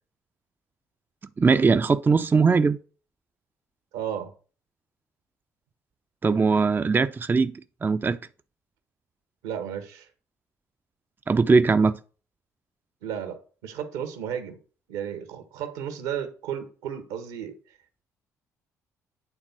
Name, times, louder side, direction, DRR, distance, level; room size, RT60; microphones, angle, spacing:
voice 1, 1.4-2.8 6.2-8.2 11.3-12.0, right 4 dB, 25° right, 0.5 m, -20 dB
voice 2, 3.9-4.3 9.4-10.1 13.0-13.4 13.6-14.6 14.9-17.5, right 9 dB, 80° right, 1.4 m, -33 dB
8.9 x 3.6 x 5.8 m
hypercardioid pair, 55°, 8 cm